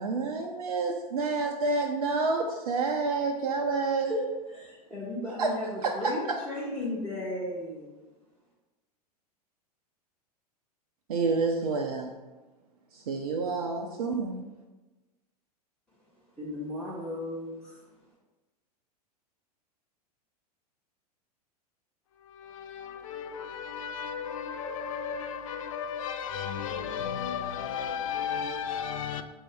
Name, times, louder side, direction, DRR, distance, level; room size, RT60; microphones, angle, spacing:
voice 1, 0.0-4.1 5.4-5.5 5.8-6.4 11.1-12.1 12.9-14.4, right 3 dB, 65° right, 0.5 m, -29 dB
voice 2, 4.0-7.9 16.4-17.8, left 1 dB, 5° left, 0.9 m, -35 dB
voice 3, 22.2-29.2, left 7 dB, 55° left, 0.5 m, -34 dB
5.2 x 2.7 x 3.3 m
figure-of-eight pair, 90°, 20 cm